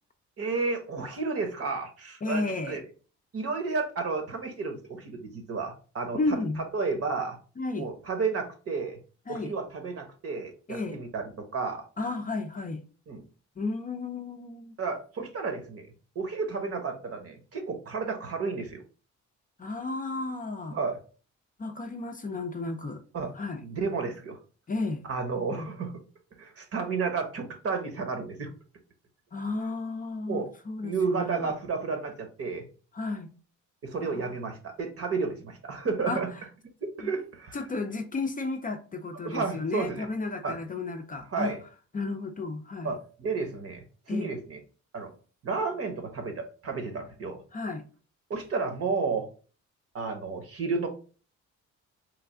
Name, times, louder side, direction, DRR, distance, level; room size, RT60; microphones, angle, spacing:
voice 1, 0.4-2.8 3.3-6.4 6.7-7.4 7.8-9.0 9.3-11.9 13.1-13.2 14.8-15.9 16.1-18.8 20.7-21.0 23.1-23.3 23.6-24.4 25.1-25.9 26.4-28.5 30.3-30.5 30.8-32.6 33.8-36.3 36.8-37.6 39.2-40.1 40.4-40.6 41.3-41.6 42.8-44.6 44.9-45.1 45.4-47.4 48.3-49.3 49.9-50.9, right 4 dB, 50° right, 1.0 m, -32 dB
voice 2, 2.2-2.8 6.1-6.6 7.6-7.9 9.3-9.5 10.7-11.0 12.0-12.8 13.6-14.8 19.6-20.8 21.6-23.0 23.3-23.6 24.7-25.0 25.5-25.7 29.3-31.5 32.9-33.3 34.0-34.4 36.0-36.2 37.0-37.1 37.5-41.5 41.9-42.9 44.1-44.3 47.5-47.9, left 3 dB, 30° left, 0.5 m, -33 dB
3.2 x 2.3 x 3.6 m
cardioid pair, 90°, 30 cm